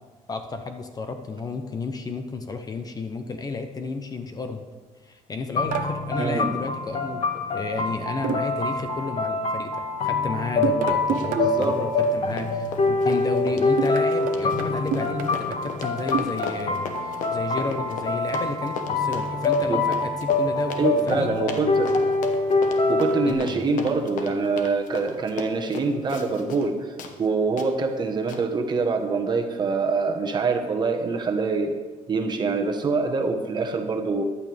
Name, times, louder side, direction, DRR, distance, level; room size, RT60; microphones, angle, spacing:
voice 1, 0.3-4.7 5.0-21.3 23.3-23.6, left 4 dB, 30° left, 7 dB, 0.8 m, -32 dB
sound 1, 5.6-23.3, left 3 dB, 50° left, 1.6 m, -25 dB
sound 2, 5.7-6.0 8.2-8.7 10.6-11.5 13.8-16.7, right 7 dB, 85° right, 0.9 m, -29 dB
voice 2, 6.2-6.5 11.3-11.8 19.7-19.8 20.8-21.9 22.9-26.9 27.2-31.7 32.1-34.2, right 4 dB, 35° right, 4 dB, 1.2 m, -25 dB
Run, 11.1-11.4 11.6-26.7 27.0-27.1 27.6-27.7 28.3-28.4, left 5 dB, 75° left, 1.3 m, -36 dB
15.0 x 11.0 x 3.5 m, 1.3 s
cardioid pair, 140°, 14 cm